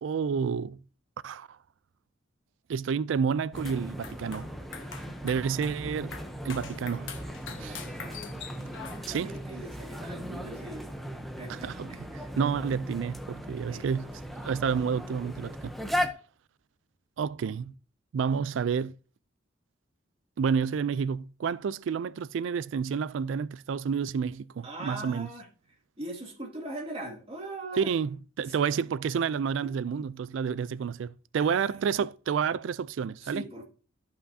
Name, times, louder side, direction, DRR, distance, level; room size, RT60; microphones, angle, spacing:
voice 1, 0.0-0.8 1.2-1.5 2.7-4.5 5.2-6.1 6.4-7.1 7.6-7.8 9.1-9.3 11.5-11.9 12.4-14.1 14.4-15.7 17.2-17.7 18.1-18.9 20.4-25.3 27.8-33.4, right 6 dB, 75° right, 0.3 m, -29 dB
sound 1, 3.5-9.5, left 6 dB, 75° left, 1.1 m, -45 dB
sound 2, 3.5-16.1, equal, ahead, 0.7 m, -38 dB
voice 2, 7.6-8.4 8.9-10.9 11.4-12.1 13.7-13.9 24.6-25.5 26.0-27.9 28.4-28.5 29.6-29.7 31.4-31.8 33.2-33.6, right 1 dB, 30° right, 2.2 m, -41 dB
13.5 x 5.7 x 2.7 m
head